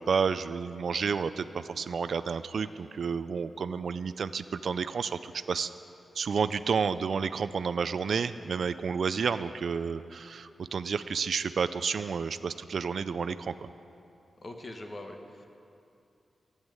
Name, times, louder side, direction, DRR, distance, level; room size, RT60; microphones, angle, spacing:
voice 1, 0.0-5.7 6.2-13.7, right 5 dB, 60° right, 12 dB, 0.3 m, -30 dB
voice 2, 14.4-15.5, left 1 dB, 30° left, 4 dB, 1.1 m, -42 dB
13.0 x 8.1 x 8.9 m, 2.7 s
wide cardioid pair, 160°, 0 cm